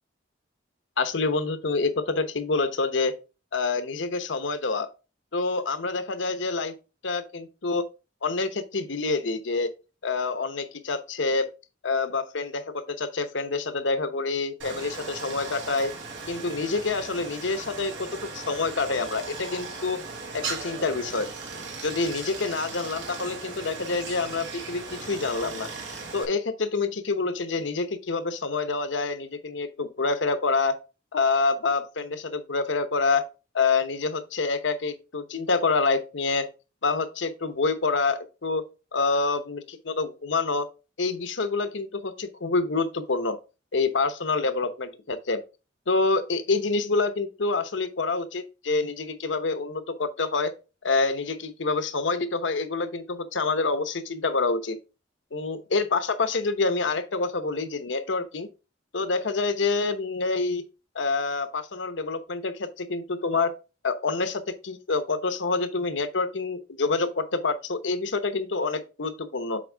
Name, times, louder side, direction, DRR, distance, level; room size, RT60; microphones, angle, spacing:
voice 1, 1.0-3.1 3.5-4.9 5.3-6.7 7.0-7.9 8.2-9.7 10.0-11.5 11.8-15.9 16.3-20.0 20.3-21.3 21.8-25.7 26.1-30.8 31.1-33.2 33.5-36.5 36.8-38.6 38.9-40.7 41.0-43.4 43.7-45.4 45.9-50.5 50.8-54.8 55.3-58.5 58.9-60.6 60.9-63.5 63.8-69.6, left 3 dB, 85° left, 0.9 m, -27 dB
Stream, 14.6-26.3, right 4 dB, 80° right, 1.6 m, -38 dB
7.6 x 4.5 x 3.4 m
head